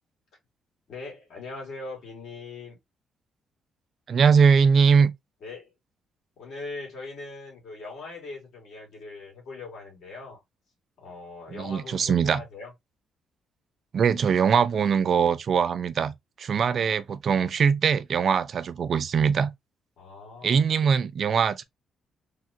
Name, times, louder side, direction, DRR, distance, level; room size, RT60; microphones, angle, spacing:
voice 1, 0.9-2.8 5.4-5.7 6.4-10.4 11.0-12.7 16.7-17.0 17.4-17.5 20.0-20.6, left 3 dB, 70° left, 2.1 m, -41 dB
voice 2, 4.1-5.1 11.5-12.4 13.9-16.1 16.4-19.5 20.4-21.6, right 6 dB, 55° right, 0.3 m, -22 dB
3.5 x 2.2 x 2.6 m
cardioid pair, 90°, 0 cm